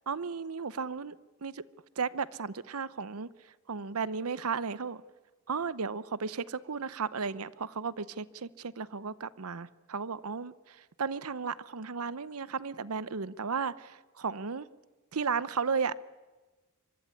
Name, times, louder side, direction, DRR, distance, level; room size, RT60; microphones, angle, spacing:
voice 1, 0.1-1.1 1.4-1.6 2.0-3.3 3.7-5.0 5.5-14.7 15.1-15.9, right 5 dB, 75° right, 17 dB, 0.8 m, -34 dB
24.0 x 23.5 x 9.7 m, 1.2 s
head